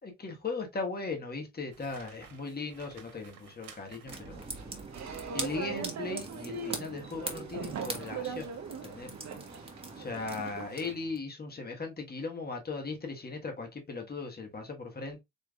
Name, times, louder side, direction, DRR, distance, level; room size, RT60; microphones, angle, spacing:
voice 1, 0.0-4.5 5.3-8.5 8.8-9.1 10.0-15.2, left 4 dB, 30° left, 1.5 m, -38 dB
sound 1, 1.7-4.7 7.1-7.4 7.9-8.1, right 7 dB, 70° right, 1.4 m, -55 dB
sound 2, 4.0-11.2, right 2 dB, 15° right, 1.4 m, -42 dB
sound 3, 4.3-10.9, right 6 dB, 55° right, 0.9 m, -40 dB
4.3 x 3.5 x 2.4 m
supercardioid pair, 70°, 34 cm